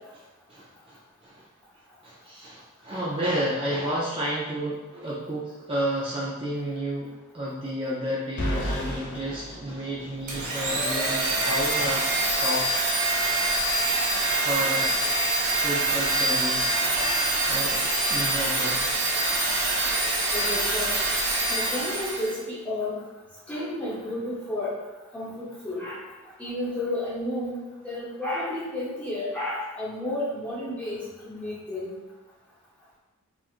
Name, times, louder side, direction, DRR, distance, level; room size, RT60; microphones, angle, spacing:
voice 1, 0.5-1.4 2.0-7.1 7.3-12.7 14.4-15.0 15.5-16.9 17.5-18.9, equal, 25° right, -6 dB, 0.4 m, -31 dB
sound 1, 8.4-10.5, equal, 50° left, 0.5 m, -32 dB
Domestic sounds home sounds, 10.3-22.4, right 2 dB, 90° right, 1.0 m, -25 dB
voice 2, 20.3-21.0 21.5-23.0 23.5-24.7 25.1-26.0 26.4-31.9, left 1 dB, 5° left, -8 dB, 0.9 m, -32 dB
4.3 x 2.4 x 2.4 m, 1.2 s
head